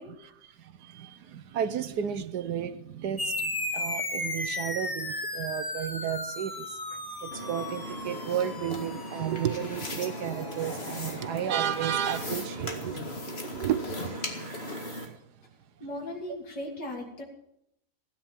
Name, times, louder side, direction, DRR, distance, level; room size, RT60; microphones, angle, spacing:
voice 1, 0.1-15.2, right 9 dB, 70° right, 1.4 m, -33 dB
sound 1, 3.2-12.1, left 2 dB, 15° left, 1.0 m, -36 dB
sound 2, 7.3-15.1, left 1 dB, 35° left, 2.2 m, -38 dB
voice 2, 15.8-17.2, left 1 dB, 80° left, 3.4 m, -37 dB
16.0 x 9.9 x 7.4 m
omnidirectional pair, 1.8 m